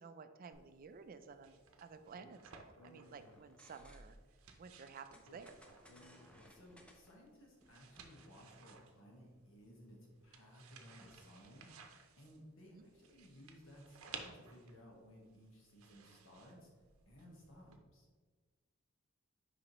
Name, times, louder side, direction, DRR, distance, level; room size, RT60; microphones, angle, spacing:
voice 1, 0.0-4.1 4.6-5.6 12.7-12.8, right 5 dB, 45° right, 10 dB, 0.4 m, -54 dB
sound 1, 0.5-17.8, right 6 dB, 85° right, 0.7 m, -59 dB
Speech, 2.1-4.0 5.2-7.0, left 2 dB, 90° left, 0.5 m, -63 dB
sound 2, 3.2-4.4 5.1-8.3, equal, 5° left, 0.6 m, -62 dB
voice 2, 6.2-11.8 12.2-16.7 17.1-18.1, equal, 65° left, -1 dB, 1.5 m, -59 dB
6.4 x 5.0 x 3.1 m, 1.5 s
head